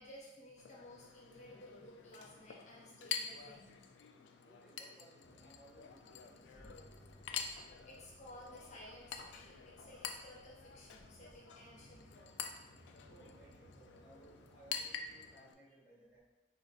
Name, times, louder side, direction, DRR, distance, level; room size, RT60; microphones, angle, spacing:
voice 1, 0.0-3.8 7.8-12.4, left 1 dB, 40° left, -4 dB, 0.8 m, -55 dB
Chink clink, 0.6-15.5, left 7 dB, 85° left, 0.3 m, -48 dB
voice 2, 4.4-6.9 13.1-16.2, right 2 dB, 10° right, -8 dB, 1.4 m, -62 dB
sound 1, 5.2-15.3, equal, 60° right, 1.5 m, -65 dB
sound 2, 5.8-11.4, equal, 20° left, 0.4 m, -62 dB
5.1 x 2.4 x 2.3 m, 1.1 s
head